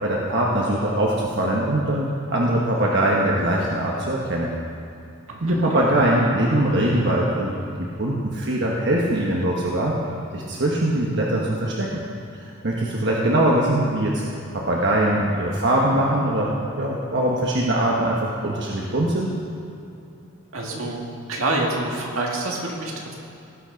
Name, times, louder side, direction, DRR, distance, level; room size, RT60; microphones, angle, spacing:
voice 1, 0.0-4.6 5.4-7.5 7.8-10.0 10.3-12.0 12.6-14.2 14.5-16.5 16.8-19.3, right 1 dB, 55° right, -3 dB, 1.2 m, -22 dB
voice 2, 5.3-5.8 20.5-21.0 21.3-23.1, right 2 dB, 80° right, -1 dB, 2.0 m, -27 dB
18.0 x 6.1 x 5.2 m, 2.6 s
head